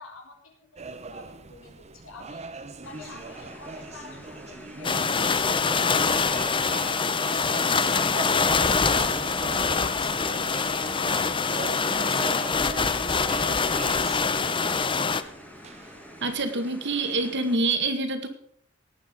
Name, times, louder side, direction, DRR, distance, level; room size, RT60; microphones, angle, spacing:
voice 1, 0.0-2.4 2.8-5.0 5.3-9.5 9.8-12.7 13.0-14.8, left 2 dB, 80° left, 2 dB, 4.0 m, -46 dB
sound 1, 0.8-16.5, right 3 dB, 35° right, 1.0 m, -41 dB
sound 2, 2.8-17.6, left 1 dB, 10° left, 1.8 m, -47 dB
sound 3, 4.8-15.2, left 4 dB, 25° left, 0.7 m, -24 dB
voice 2, 16.2-18.3, right 2 dB, 60° right, 7 dB, 2.1 m, -26 dB
18.5 x 8.8 x 5.4 m, 0.63 s
head